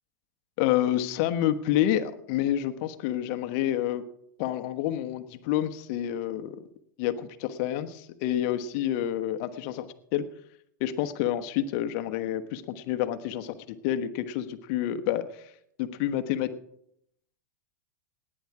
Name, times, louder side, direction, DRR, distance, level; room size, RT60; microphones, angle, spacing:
voice 1, 0.6-4.0 4.4-6.6 7.0-10.3 10.8-15.5 15.8-16.5, left 12 dB, 50° left, 10 dB, 1.2 m, -28 dB
17.0 x 10.0 x 4.8 m, 0.72 s
hypercardioid pair, 115°, 11 cm